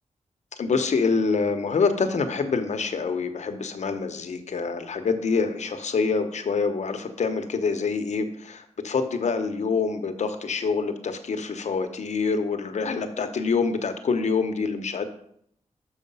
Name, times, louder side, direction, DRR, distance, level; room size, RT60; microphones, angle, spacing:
voice 1, 0.6-15.0, left 4 dB, 75° left, 7 dB, 0.9 m, -26 dB
6.5 x 6.5 x 5.4 m, 0.70 s
wide cardioid pair, 140°, 12 cm